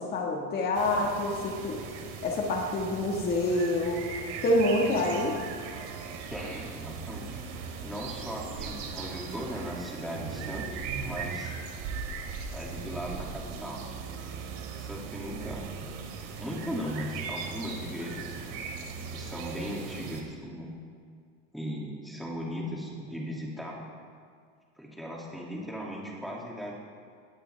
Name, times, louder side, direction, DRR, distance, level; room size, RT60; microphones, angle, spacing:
voice 1, 0.0-1.8 2.2-4.0 4.4-5.4, left 1 dB, 30° left, -1 dB, 1.6 m, -27 dB
sound 1, 0.7-20.2, right 5 dB, 80° right, 2.6 m, -39 dB
voice 2, 6.3-7.4 7.8-11.5 12.5-13.8 14.8-15.6 16.4-18.4 19.1-20.7 21.5-23.8 24.8-26.7, equal, ahead, -3 dB, 2.4 m, -38 dB
20.0 x 15.5 x 3.4 m, 2.1 s
cardioid pair, 165°, 34 cm